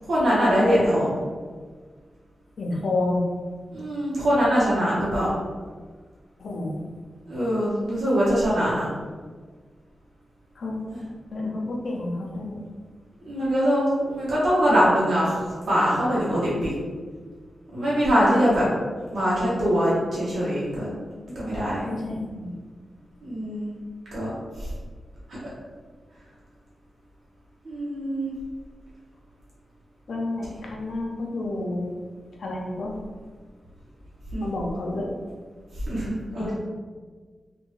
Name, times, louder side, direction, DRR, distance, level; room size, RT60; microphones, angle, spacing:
voice 1, 0.1-1.2 3.7-5.3 7.2-8.9 10.9-11.0 13.2-16.7 17.7-18.6 19.1-20.9 21.2-21.9 23.2-23.7 24.1-24.3 24.6-24.7 27.6-28.3 34.3-34.4 35.9-36.5, equal, 75° right, -9 dB, 1.1 m, -23 dB
voice 2, 2.6-3.2 6.4-6.8 10.6-10.8 11.3-12.6 18.3-18.7 21.9-22.5 30.1-31.9 32.4-33.0 34.4-35.1 36.4-36.5, left 2 dB, 75° left, -1 dB, 0.6 m, -30 dB
2.6 x 2.6 x 3.1 m, 1.5 s
cardioid pair, 50°, 0 cm